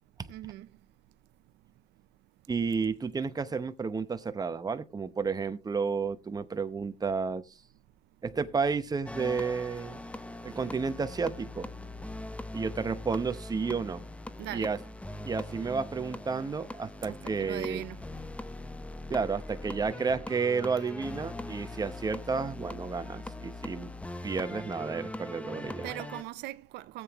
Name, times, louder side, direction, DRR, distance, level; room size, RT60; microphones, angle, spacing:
voice 1, 0.3-0.7 14.4-14.7 17.0-18.0 25.8-27.0, right 16 dB, 85° right, 0.6 m, -40 dB
voice 2, 2.5-7.4 8.2-10.0 10.4-11.7 12.5-14.0 14.5-14.8 15.2-17.8 19.1-23.9 24.2-25.9, right 5 dB, 20° right, 0.9 m, -31 dB
sound 1, 9.1-26.2, left 2 dB, 5° left, 0.7 m, -41 dB
18.5 x 7.9 x 3.1 m
cardioid pair, 110°, 17 cm